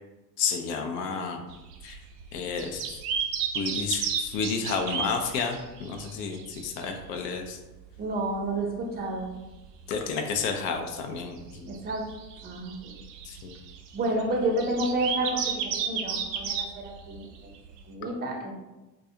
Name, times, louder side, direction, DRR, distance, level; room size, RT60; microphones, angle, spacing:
voice 1, 0.4-1.4 1.8-2.0 2.3-3.0 3.5-7.6 9.9-11.7 13.2-13.6, left 5 dB, 75° left, 4 dB, 0.5 m, -31 dB
sound 1, 1.5-7.5 7.7-7.8 8.1-8.2 8.5-8.6 9.1-10.0 10.3-10.4 11.1-17.8, right 7 dB, 75° right, 0.5 m, -34 dB
voice 2, 8.0-9.3 11.7-12.0 12.4-12.7 13.9-17.3 17.9-18.5, right 1 dB, 20° right, 1 dB, 0.5 m, -30 dB
2.4 x 2.3 x 2.7 m, 1.1 s
hypercardioid pair, 85°, 50 cm